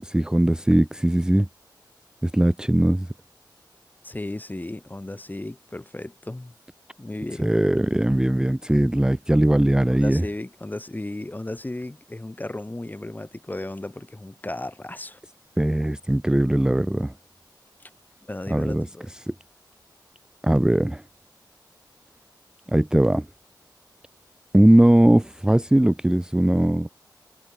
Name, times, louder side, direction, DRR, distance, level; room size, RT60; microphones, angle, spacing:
voice 1, 0.0-1.5 2.2-3.1 7.4-10.2 15.6-17.1 18.5-19.3 20.4-21.0 22.7-23.3 24.5-26.9, right 1 dB, 10° right, 0.5 m, -20 dB
voice 2, 4.0-6.5 7.0-7.5 9.9-15.2 18.3-19.1, left 1 dB, 20° left, 2.8 m, -35 dB
wide cardioid pair, 60°, 8 cm